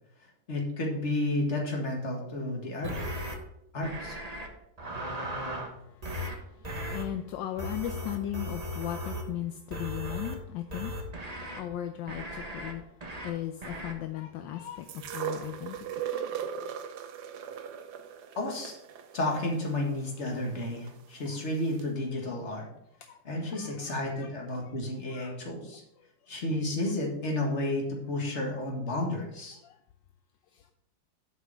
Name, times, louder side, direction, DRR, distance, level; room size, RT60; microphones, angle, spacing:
voice 1, 0.5-2.9 3.7-4.1 18.4-18.8 19.1-22.7 23.2-25.8 26.3-29.6, left 1 dB, 35° left, 0 dB, 2.1 m, -31 dB
sound 1, 2.8-3.4 3.8-4.5 4.8-5.7 6.0-6.3 6.6-7.0 7.6-9.3 9.7-10.3 10.7-11.6 12.1-12.7 13.0-13.3 13.6-13.9, equal, 25° right, 1.1 m, -37 dB
voice 2, 6.9-12.8 13.2-15.8 21.3-21.4 23.1-24.3 24.6-24.7 25.1-25.4 29.6-29.8, left 12 dB, 75° left, 7 dB, 1.3 m, -37 dB
sound 2, 14.9-20.9 21.8-21.9, right 9 dB, 65° right, 1.2 m, -38 dB
7.7 x 5.5 x 6.2 m, 0.80 s
omnidirectional pair, 2.1 m